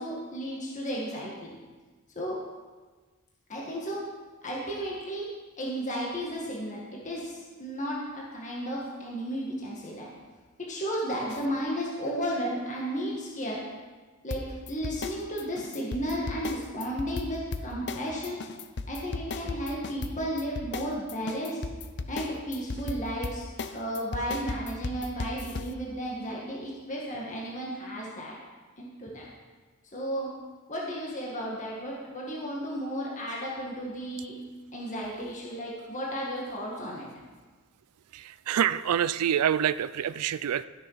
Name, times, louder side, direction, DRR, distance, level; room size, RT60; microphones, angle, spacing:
voice 1, 0.0-1.5 2.2-2.4 3.5-4.0 4.4-5.2 5.6-10.1 10.7-13.6 14.2-14.4 14.7-18.4 18.9-21.6 22.1-23.5 23.7-28.4 28.8-29.3 29.9-30.3 30.7-34.4 34.7-37.1, equal, 35° left, -4 dB, 1.7 m, -33 dB
sound 1, 11.3-11.5 14.3-25.7, left 3 dB, 50° left, 0.6 m, -36 dB
voice 2, 38.1-40.7, right 9 dB, 90° right, 16 dB, 0.4 m, -26 dB
13.5 x 6.6 x 5.6 m, 1.4 s
head